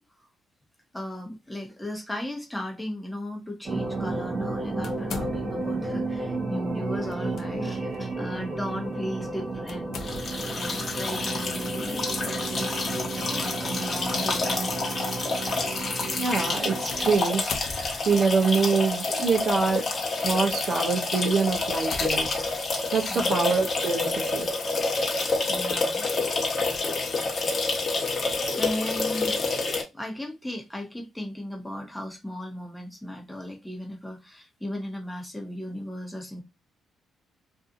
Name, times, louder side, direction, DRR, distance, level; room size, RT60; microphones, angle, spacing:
voice 1, 0.9-10.0 10.5-14.7 23.1-23.5 25.5-26.1 28.5-29.7 29.9-36.4, left 1 dB, 5° left, 1.0 m, -36 dB
sound 1, 3.6-17.2, right 3 dB, 30° right, 1.0 m, -32 dB
sound 2, 4.8-5.8 7.1-7.5 7.9-8.0 9.7-10.6 12.6-12.9 13.8-13.9 16.9-18.3 19.2-19.6 20.2-20.4 21.0-21.1 21.7-22.9, left 4 dB, 60° left, 0.5 m, -39 dB
sound 3, 10.0-29.8, left 3 dB, 40° left, 1.0 m, -28 dB
voice 2, 16.0-19.8 20.2-22.6 22.9-24.5, right 4 dB, 60° right, 0.6 m, -25 dB
2.6 x 2.4 x 2.5 m
cardioid pair, 90°, 0 cm